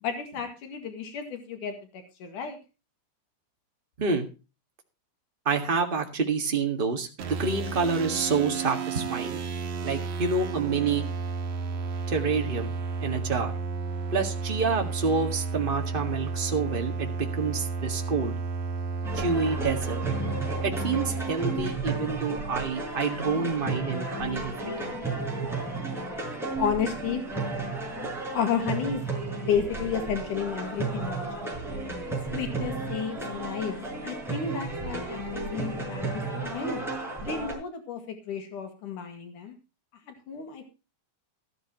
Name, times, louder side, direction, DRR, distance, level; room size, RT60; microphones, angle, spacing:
voice 1, 0.0-2.6 26.6-27.2 28.3-29.0 29.3-31.5 32.3-36.8 37.2-39.6 40.1-40.6, left 7 dB, 85° left, 6 dB, 3.6 m, -32 dB
voice 2, 5.4-9.4 9.8-11.0 12.1-12.7 13.0-13.5 14.1-18.3 19.1-20.0 20.6-25.0, right 4 dB, 20° right, 3 dB, 1.5 m, -28 dB
sound 1, 7.2-21.3, right 4 dB, 70° right, 2.9 m, -32 dB
sound 2, 19.0-37.5, right 3 dB, ahead, 5.6 m, -33 dB
13.5 x 13.5 x 3.0 m, 0.30 s
omnidirectional pair, 3.5 m